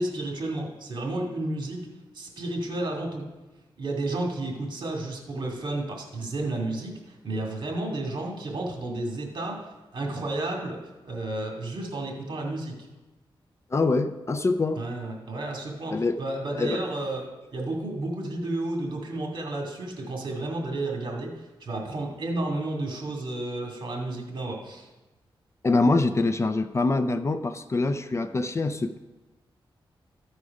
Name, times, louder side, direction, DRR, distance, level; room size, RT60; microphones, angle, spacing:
voice 1, 0.0-1.8 2.1-3.2 3.8-9.7 9.9-10.8 11.0-12.7 14.7-17.3 17.5-24.9, right 2 dB, 55° right, 0 dB, 2.2 m, -32 dB
voice 2, 13.7-14.8 15.9-16.2 16.6-16.8 25.6-29.0, left 3 dB, 30° left, 10 dB, 0.4 m, -24 dB
14.0 x 4.9 x 5.2 m, 1.1 s
wide cardioid pair, 105°, 9 cm